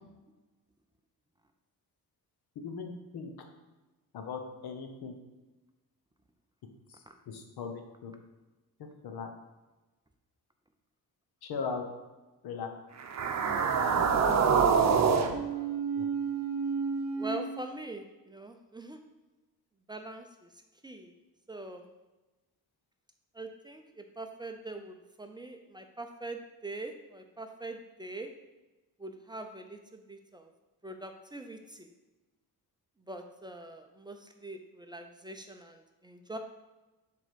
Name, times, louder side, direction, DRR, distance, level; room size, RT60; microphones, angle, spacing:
voice 1, 2.5-3.3 4.1-5.2 6.9-7.0 7.3-8.1 9.0-9.3 11.4-11.8 12.4-12.7 16.0-16.1, left 5 dB, 90° left, 5 dB, 1.1 m, -38 dB
sound 1, 13.0-17.4, right 6 dB, 50° right, 0.7 m, -27 dB
voice 2, 15.5-15.8 17.2-19.0 19.9-20.5 20.8-21.1 21.5-21.9 23.3-28.3 29.0-30.5 30.8-31.9 33.1-36.4, right 2 dB, 10° right, 5 dB, 0.5 m, -43 dB
7.7 x 3.7 x 5.1 m, 1.1 s
cardioid pair, 140°, 37 cm